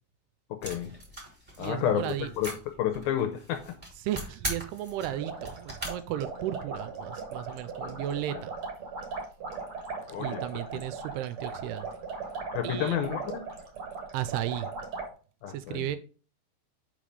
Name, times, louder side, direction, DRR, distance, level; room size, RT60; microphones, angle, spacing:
voice 1, 0.5-0.9 1.6-3.8 7.8-8.1 8.3-8.4 10.1-10.4 12.5-13.4 15.4-15.9, left 10 dB, 80° left, 2.2 m, -31 dB
sound 1, 0.6-5.9, right 1 dB, 15° right, 1.5 m, -40 dB
voice 2, 1.6-2.3 4.0-8.5 10.1-11.9 12.6-13.2 14.1-14.7 15.5-16.0, right 12 dB, 85° right, 2.5 m, -34 dB
sound 2, 5.2-15.1, right 4 dB, 45° right, 1.9 m, -38 dB
5.7 x 5.1 x 5.3 m
omnidirectional pair, 4.8 m